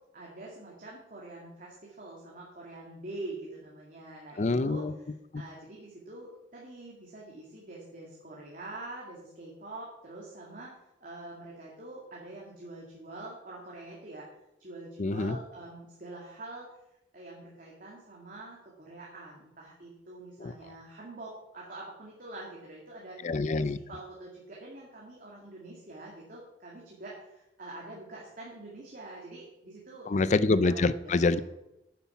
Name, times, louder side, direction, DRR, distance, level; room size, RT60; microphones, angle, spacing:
voice 1, 0.1-4.8 5.3-10.7 11.0-14.3 14.6-16.7 17.1-23.2 23.6-30.3 30.7-31.4, right 2 dB, 50° right, -3 dB, 2.2 m, -45 dB
voice 2, 4.4-4.9 5.3-5.4 15.0-15.4 20.4-20.5 23.2-23.8 30.1-31.4, left 3 dB, 40° left, 16 dB, 0.5 m, -26 dB
9.4 x 8.3 x 5.9 m, 0.88 s
head